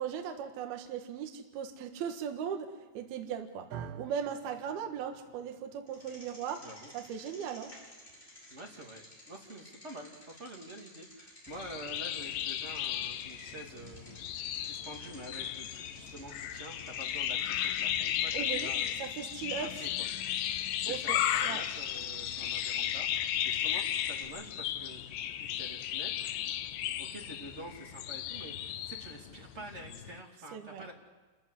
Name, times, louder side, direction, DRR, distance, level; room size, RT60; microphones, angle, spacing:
voice 1, 0.0-6.6 6.9-7.7 18.3-18.7 19.0-19.8 20.9-21.6 30.5-30.9, right 8 dB, 65° right, 4 dB, 3.1 m, -38 dB
sound 1, 3.7-12.0, right 8 dB, 90° right, 3.6 m, -52 dB
Bicycle, 5.9-24.2, left 1 dB, 10° left, 6.3 m, -54 dB
voice 2, 6.6-6.9 8.5-19.0 19.6-19.9 20.8-26.3 27.0-30.9, right 1 dB, 25° right, 0 dB, 1.6 m, -48 dB
sound 2, 11.5-30.2, left 11 dB, 80° left, 3.0 m, -35 dB
28.5 x 15.0 x 9.8 m, 1.3 s
omnidirectional pair, 5.3 m